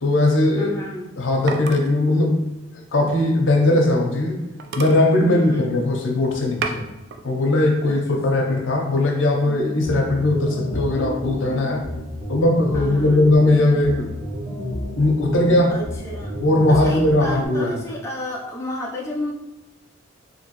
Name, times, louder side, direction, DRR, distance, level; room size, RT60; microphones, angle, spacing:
voice 1, 0.0-0.7 1.2-2.4 2.9-4.4 4.7-6.9 7.2-11.8 12.3-14.1 15.0-15.8 16.4-17.8, left 2 dB, 75° left, 1 dB, 0.6 m, -19 dB
voice 2, 0.6-1.1 5.3-5.8 7.9-8.0 12.7-13.3 15.7-16.4 16.7-19.3, left 1 dB, 15° left, -4 dB, 0.4 m, -31 dB
sound 1, 1.5-3.9 4.3-4.4 4.6-6.0 6.3-7.2 7.7-8.2, right 4 dB, 60° right, 0.3 m, -34 dB
sound 2, 9.5-17.5, equal, 10° right, 0.8 m, -31 dB
2.9 x 2.6 x 2.9 m, 1.0 s
head